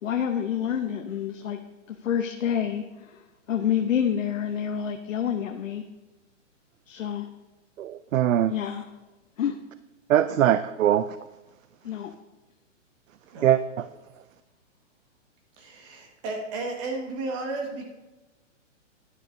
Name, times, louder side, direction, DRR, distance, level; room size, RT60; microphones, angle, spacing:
voice 1, 0.0-1.6 1.9-3.2 3.5-5.8 6.9-7.3 8.5-8.8 9.4-9.6 11.8-12.1, left 9 dB, 80° left, 5 dB, 0.9 m, -28 dB
voice 2, 7.8-8.5 10.1-11.2 13.4-13.9, right 11 dB, 90° right, 13 dB, 0.5 m, -22 dB
voice 3, 13.3-13.6 15.6-17.8, right 3 dB, 25° right, 1 dB, 1.5 m, -33 dB
12.0 x 9.8 x 2.6 m, 1.1 s
hypercardioid pair, 165°, 38 cm